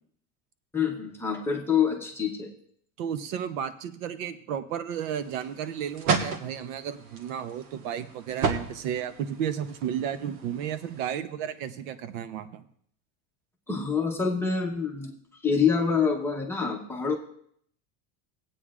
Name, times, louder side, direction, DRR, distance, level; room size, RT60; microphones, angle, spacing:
voice 1, 0.7-2.5 13.7-15.1 15.4-17.1, left 6 dB, 5° left, -1 dB, 0.8 m, -26 dB
voice 2, 3.0-12.6, right 9 dB, 75° right, 12 dB, 0.8 m, -33 dB
sound 1, 4.9-11.2, right 5 dB, 90° right, 1.5 m, -34 dB
17.5 x 8.6 x 2.4 m, 0.64 s
cardioid pair, 170°, 40 cm